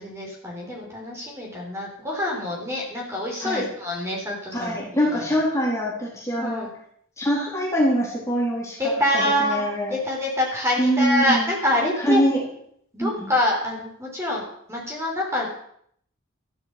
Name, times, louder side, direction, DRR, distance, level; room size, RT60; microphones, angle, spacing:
voice 1, 0.0-5.3 6.4-6.7 8.8-9.6 9.9-12.2 12.9-14.4 14.7-15.5, left 1 dB, 15° right, -1 dB, 5.0 m, -26 dB
voice 2, 4.5-6.7 7.2-9.9 10.8-11.5 12.0-12.5 13.0-13.3, equal, 15° left, -4 dB, 4.3 m, -24 dB
14.0 x 8.6 x 8.6 m, 0.66 s
head